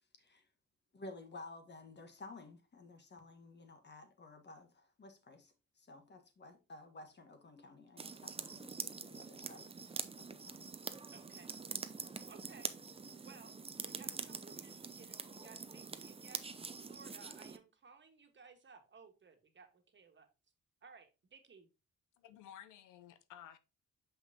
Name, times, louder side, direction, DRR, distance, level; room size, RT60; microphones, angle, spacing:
voice 1, 0.9-9.7 10.2-10.7, left 2 dB, 35° left, 1.5 m, -54 dB
sound 1, 8.0-17.6, right 4 dB, 20° right, 0.6 m, -45 dB
voice 2, 11.1-11.5 12.3-12.7 13.2-13.5 13.8-20.3 20.8-21.7, right 5 dB, 40° right, 1.6 m, -59 dB
voice 3, 22.2-23.6, left 10 dB, 90° left, 0.7 m, -54 dB
6.4 x 5.5 x 2.8 m
cardioid pair, 90°, 30 cm